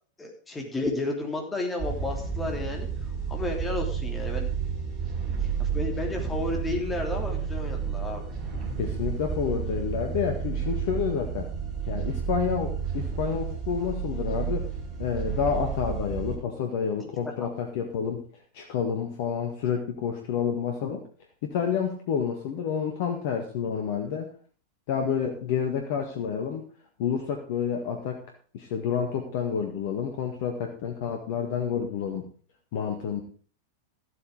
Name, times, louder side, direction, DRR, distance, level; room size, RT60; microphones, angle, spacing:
voice 1, 0.2-2.9 3.3-4.5 5.2-8.2 17.4-17.5, left 2 dB, 15° left, 2 dB, 3.2 m, -32 dB
sound 1, 1.8-16.4, right 6 dB, 30° right, 5.0 m, -31 dB
voice 2, 8.8-11.5 11.9-14.6 15.0-18.2 18.5-21.0 21.4-24.3 24.9-26.6 27.0-28.2 28.5-32.2 32.7-33.2, left 7 dB, 50° left, 4 dB, 1.8 m, -29 dB
14.0 x 8.6 x 5.1 m, 0.42 s
figure-of-eight pair, 90°, 0 cm